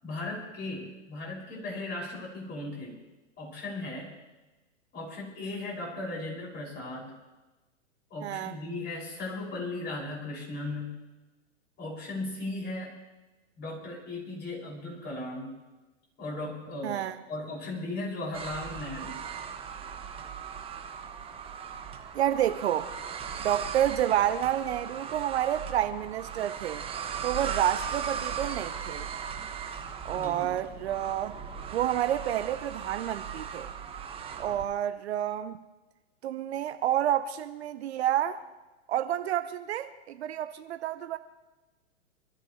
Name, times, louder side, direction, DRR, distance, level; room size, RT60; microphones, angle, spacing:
voice 1, 0.0-3.0 3.4-4.1 4.9-7.1 8.1-10.9 11.8-12.9 13.6-15.5 16.2-17.0 17.3-19.2 30.1-30.6, left 2 dB, 25° left, 6.2 m, -37 dB
voice 2, 8.2-8.5 16.8-17.1 22.1-22.9 23.4-26.8 27.2-29.0 30.0-31.4 31.7-33.7 34.4-35.6 36.2-38.4 38.9-41.2, right 11 dB, 55° right, 0.8 m, -29 dB
sound 1, 18.3-34.7, right 7 dB, 15° right, 1.1 m, -38 dB
25.0 x 13.5 x 3.2 m
hypercardioid pair, 125°, 38 cm